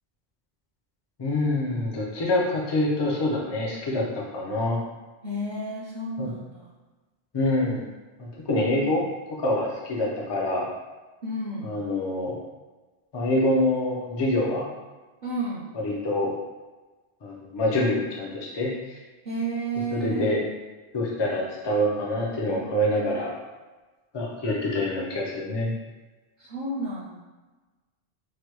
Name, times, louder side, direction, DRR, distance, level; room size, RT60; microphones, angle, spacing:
voice 1, 1.2-4.8 6.2-6.3 7.3-7.9 8.2-9.0 9.3-10.7 11.6-12.4 13.1-14.7 15.7-16.3 17.2-19.0 19.9-20.4 20.9-23.3 24.1-25.7, left 1 dB, 35° left, -2 dB, 0.4 m, -26 dB
voice 2, 5.2-6.7 11.2-11.7 15.2-15.7 19.2-20.3 26.4-27.2, right 2 dB, 50° right, -8 dB, 0.7 m, -31 dB
3.2 x 2.1 x 3.0 m, 1.2 s
omnidirectional pair, 1.1 m